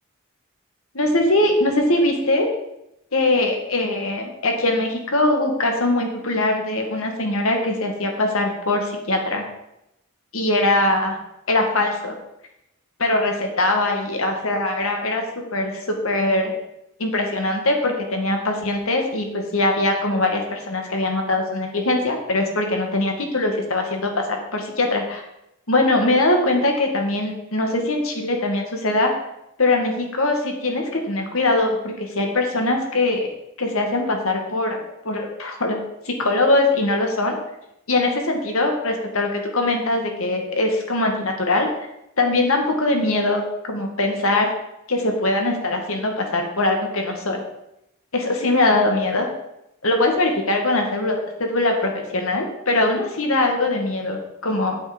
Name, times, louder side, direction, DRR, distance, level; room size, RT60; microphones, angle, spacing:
voice 1, 0.9-2.5 3.1-9.4 10.3-11.2 11.5-12.1 13.0-15.2 15.5-16.5 17.0-25.2 25.7-29.1 29.6-33.3 33.6-34.8 35.0-35.8 36.1-37.4 37.9-41.7 42.2-44.5 44.9-47.4 48.1-49.3 49.8-54.8, left 2 dB, 70° left, 3 dB, 2.0 m, -21 dB
8.8 x 8.6 x 5.3 m, 0.86 s
head